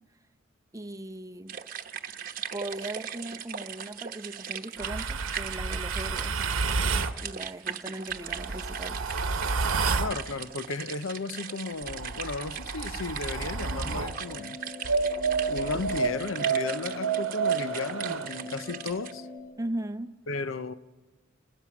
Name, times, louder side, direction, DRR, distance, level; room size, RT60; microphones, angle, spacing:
voice 1, 0.7-1.5 2.5-6.4 7.2-9.0 19.6-20.1, right 1 dB, 15° right, 0.7 m, -38 dB
sound 1, 1.5-19.1, right 8 dB, 45° right, 1.0 m, -39 dB
sound 2, 4.8-7.2 8.1-10.2 11.8-14.2 14.8-18.3, right 4 dB, 80° right, 1.0 m, -30 dB
voice 2, 10.0-14.6 15.5-19.3 20.3-20.7, left 3 dB, 75° left, 0.7 m, -34 dB
sound 3, 13.3-19.4, left 3 dB, 20° left, 8.0 m, -44 dB
30.0 x 21.0 x 6.0 m
head